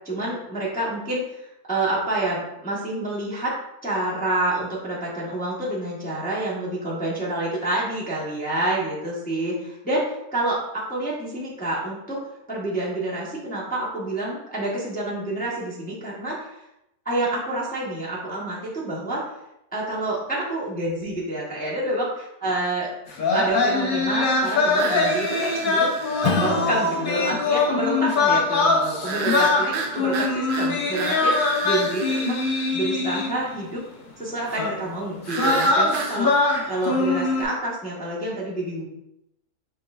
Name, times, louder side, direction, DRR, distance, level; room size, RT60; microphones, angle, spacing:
voice 1, 0.0-3.5 3.8-12.2 12.5-16.6 17.0-19.2 19.7-22.9 23.3-25.9 26.2-32.4 32.7-33.8 34.2-36.3 36.7-38.8, right 1 dB, 5° left, -7 dB, 0.9 m, -28 dB
sound 1, 23.1-33.5 34.5-34.7 35.3-37.4, left 3 dB, 50° left, 0.6 m, -23 dB
sound 2, 24.7-26.7 29.0-32.7 35.3-36.2, right 5 dB, 65° right, 0.8 m, -31 dB
Strum, 26.2-31.2, left 5 dB, 90° left, 1.1 m, -33 dB
6.1 x 3.6 x 2.4 m, 0.84 s
omnidirectional pair, 1.7 m